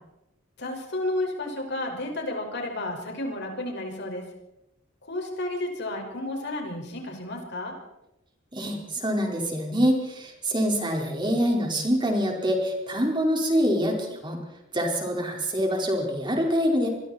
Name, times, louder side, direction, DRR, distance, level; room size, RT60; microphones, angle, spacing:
voice 1, 0.6-4.2 5.1-7.7, left 1 dB, 60° left, 2 dB, 5.8 m, -32 dB
voice 2, 8.5-14.4 14.7-16.9, equal, 25° right, 1 dB, 5.0 m, -25 dB
27.0 x 22.5 x 4.5 m, 0.88 s
head